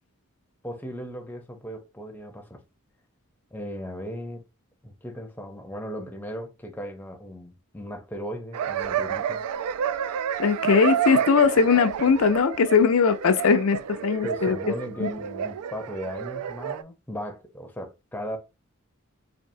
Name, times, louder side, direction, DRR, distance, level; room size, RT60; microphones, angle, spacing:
voice 1, 0.6-2.6 3.5-4.4 4.8-9.4 14.2-18.4, equal, 10° left, 0.5 m, -36 dB
sound 1, 8.5-16.8, right 8 dB, 85° right, 0.3 m, -30 dB
voice 2, 10.4-14.6 15.0-15.1, left 5 dB, 70° left, 0.4 m, -20 dB
4.3 x 2.7 x 2.6 m
head